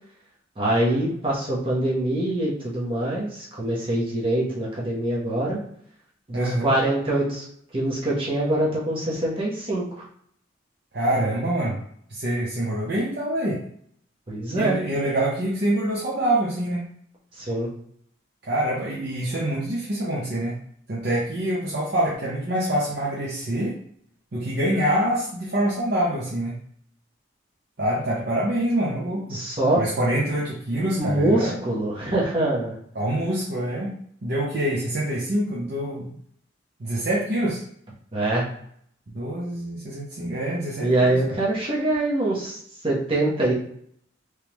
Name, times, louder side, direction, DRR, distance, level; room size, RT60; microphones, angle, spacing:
voice 1, 0.6-5.6 6.3-7.4 7.7-10.0 14.3-14.8 17.4-17.7 29.3-29.8 31.0-32.7 38.1-38.5 40.8-43.5, right 1 dB, 30° right, -6 dB, 1.1 m, -24 dB
voice 2, 6.3-6.7 10.9-11.8 12.1-13.6 14.6-16.9 18.4-20.6 20.9-23.7 24.3-26.6 27.8-29.4 29.7-31.6 32.9-33.9 34.2-36.1 36.8-37.6 39.1-41.2, right 1 dB, 60° right, -5 dB, 0.8 m, -25 dB
3.4 x 3.2 x 3.0 m, 0.66 s
head